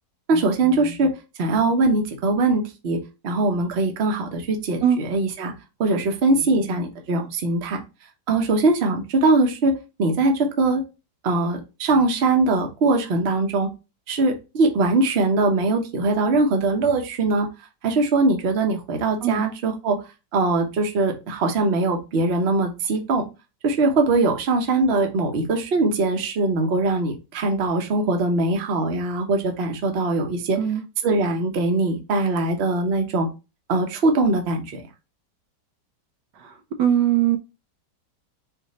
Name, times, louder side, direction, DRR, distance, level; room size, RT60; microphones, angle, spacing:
voice 1, 0.3-1.1 1.4-5.5 5.8-7.8 8.3-9.7 10.0-10.8 11.2-13.7 14.1-17.5 17.8-20.0 20.3-23.2 23.6-30.6 31.0-33.3 33.7-34.8, right 3 dB, 45° right, 0.9 m, -21 dB
voice 2, 36.4-37.4, right 10 dB, 80° right, 1.2 m, -21 dB
4.4 x 2.6 x 4.0 m
omnidirectional pair, 1.9 m